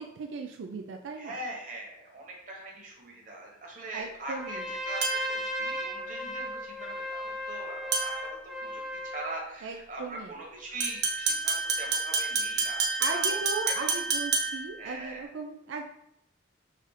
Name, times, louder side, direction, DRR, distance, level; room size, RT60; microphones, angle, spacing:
voice 1, 0.0-1.4 3.9-4.6 9.6-10.3 13.0-15.8, right 4 dB, 85° right, 4 dB, 0.4 m, -37 dB
voice 2, 1.2-8.8 9.1-13.4 13.7-14.0 14.8-15.3, right 2 dB, 45° right, -1 dB, 1.2 m, -41 dB
Trumpet, 4.3-9.4, equal, ahead, 0.7 m, -36 dB
sound 1, 5.0-5.5 7.9-8.3 10.8-14.8, right 4 dB, 60° right, 0.8 m, -29 dB
4.1 x 2.5 x 4.8 m, 0.79 s
head